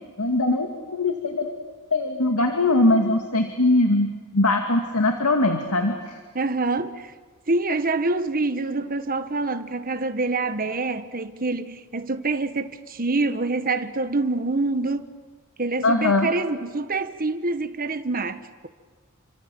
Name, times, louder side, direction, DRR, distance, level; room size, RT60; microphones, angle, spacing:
voice 1, 0.2-1.5 1.9-6.2 15.8-16.3, left 2 dB, 75° left, 2.2 m, -21 dB
voice 2, 6.3-7.1 7.5-15.1 15.6-18.7, right 3 dB, 40° right, 1.3 m, -26 dB
29.5 x 25.5 x 7.7 m
head